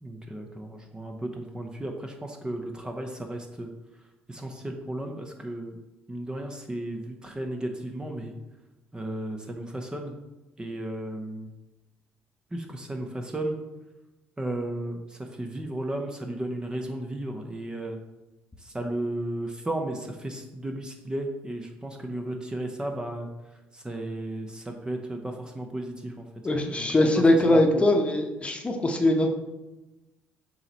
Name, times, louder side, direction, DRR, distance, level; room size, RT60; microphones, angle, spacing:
voice 1, 0.0-3.7 4.3-5.7 6.1-8.3 8.9-10.1 10.6-11.5 12.5-13.6 14.4-18.0 18.6-23.3 23.7-26.2 26.6-26.9 27.1-27.8, right 1 dB, 15° right, 3 dB, 0.8 m, -34 dB
voice 2, 26.4-29.3, left 1 dB, 25° left, 3 dB, 1.0 m, -21 dB
7.6 x 3.1 x 4.1 m, 1.1 s
supercardioid pair, 70°, 5 cm